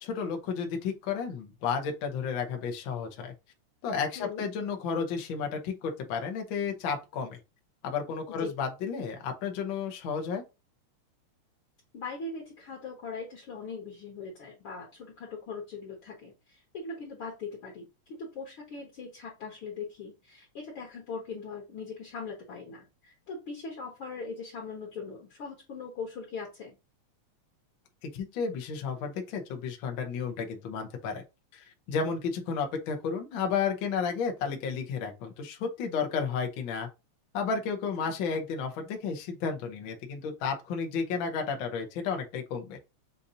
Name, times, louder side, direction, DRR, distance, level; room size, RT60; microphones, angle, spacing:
voice 1, 0.0-3.3 3.8-7.4 7.8-10.4 28.0-31.2 31.5-36.9 37.3-42.8, left 5 dB, 80° left, 1.1 m, -32 dB
voice 2, 11.9-26.8 38.0-38.4, left 4 dB, 55° left, 1.6 m, -40 dB
6.7 x 2.6 x 2.7 m
omnidirectional pair, 3.4 m